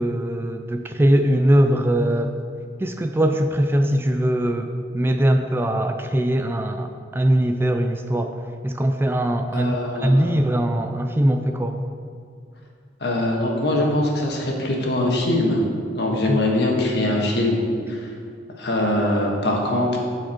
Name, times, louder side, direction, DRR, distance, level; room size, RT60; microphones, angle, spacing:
voice 1, 0.0-2.3 2.8-8.4 8.6-11.8 16.2-16.4, right 1 dB, 15° right, 6 dB, 0.3 m, -21 dB
voice 2, 9.5-10.4 13.0-15.6 15.9-17.6 17.9-18.1 18.6-20.0, left 1 dB, 65° left, -1 dB, 1.5 m, -22 dB
12.5 x 4.8 x 4.4 m, 2.2 s
head